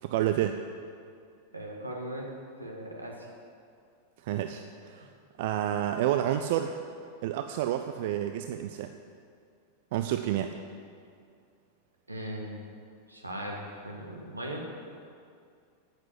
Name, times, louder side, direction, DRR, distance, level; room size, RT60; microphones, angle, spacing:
voice 1, 0.0-0.6 4.2-5.1 5.4-6.8 7.2-8.9 9.9-10.5, right 11 dB, 50° right, 7 dB, 0.4 m, -29 dB
voice 2, 1.5-2.3 2.6-3.3 4.9-5.1 12.1-12.7 13.1-14.6, right 1 dB, 85° right, 0 dB, 1.8 m, -38 dB
8.8 x 8.2 x 7.7 m, 2.3 s
figure-of-eight pair, 90°, 0 cm